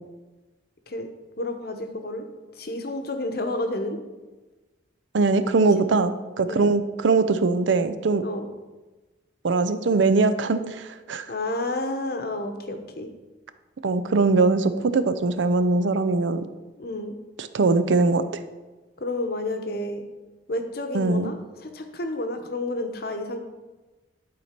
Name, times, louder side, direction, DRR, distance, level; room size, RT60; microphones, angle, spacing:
voice 1, 1.4-2.3 2.5-4.0 6.5-6.7 8.2-8.5 11.3-13.1 16.8-17.2 19.0-20.0 20.5-23.4, left 2 dB, 55° left, 6 dB, 0.8 m, -30 dB
voice 2, 5.1-8.2 9.4-11.3 13.8-16.4 17.4-18.2 20.9-21.3, right 3 dB, 80° right, 11 dB, 0.5 m, -21 dB
11.0 x 4.4 x 4.4 m, 1.2 s
head